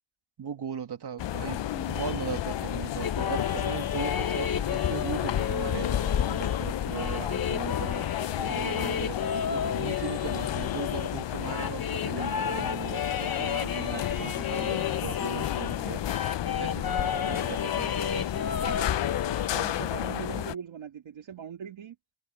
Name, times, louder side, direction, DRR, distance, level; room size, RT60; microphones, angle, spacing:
voice 1, 0.4-9.2 9.5-16.0 16.6-17.9, right 7 dB, 55° right, 1.9 m, -38 dB
sound 1, 1.2-20.5, left 12 dB, 65° left, 0.6 m, -32 dB
sound 2, 1.5-11.7 13.4-19.6, left 8 dB, 90° left, 1.4 m, -38 dB
sound 3, 3.0-15.8 16.1-19.5, left 7 dB, 50° left, 1.2 m, -32 dB
voice 2, 19.4-22.0, right 8 dB, 80° right, 2.2 m, -40 dB
wide cardioid pair, 145°, 46 cm